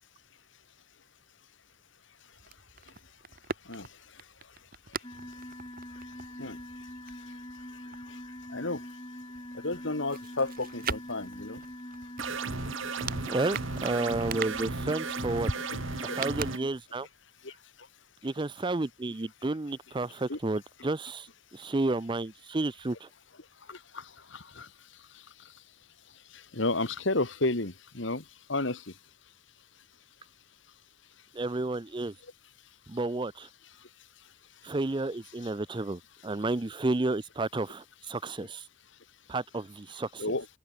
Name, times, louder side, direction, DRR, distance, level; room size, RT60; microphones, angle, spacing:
sound 1, 2.3-8.9 9.2-17.1 17.4-17.5, right 4 dB, 45° right, 2.4 m, -42 dB
sound 2, 5.0-16.7, left 1 dB, 25° left, 7.5 m, -44 dB
voice 1, 8.5-8.8 9.6-11.6 16.1-16.2 17.4-17.5 20.3-20.4 23.7-24.7 26.3-28.2 28.5-28.9 35.4-35.5 40.2-40.5, left 2 dB, 65° left, 2.1 m, -32 dB
sound 3, 12.2-16.6, right 4 dB, 70° right, 1.8 m, -35 dB
voice 2, 13.3-15.5 16.0-17.1 18.2-21.3 21.5-23.1 31.3-32.1 32.9-33.5 34.6-38.6 39.3-40.2, right 2 dB, 25° right, 0.5 m, -31 dB
open air
head